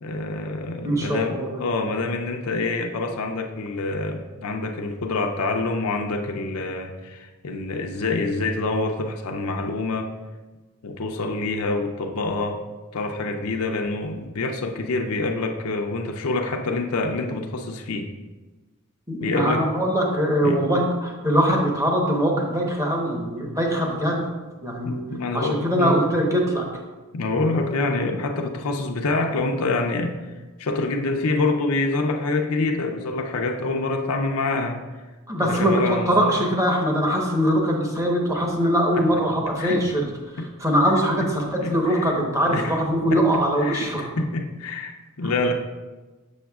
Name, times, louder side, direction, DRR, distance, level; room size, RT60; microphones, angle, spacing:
voice 1, 0.0-10.1 10.8-12.6 12.9-18.1 19.2-19.6 20.4-20.6 24.8-26.0 27.1-30.2 30.6-34.8 35.4-36.4 38.9-39.2 39.6-39.8 40.4-40.5 41.2-41.3 41.6-42.2 42.5-42.8 43.1-45.5, left 3 dB, 75° left, 3 dB, 0.5 m, -26 dB
voice 2, 0.8-1.6 19.1-24.3 24.6-25.0 25.3-26.7 35.3-40.1 40.6-44.0, equal, 15° right, -1 dB, 1.0 m, -22 dB
7.2 x 6.7 x 2.3 m, 1.2 s
head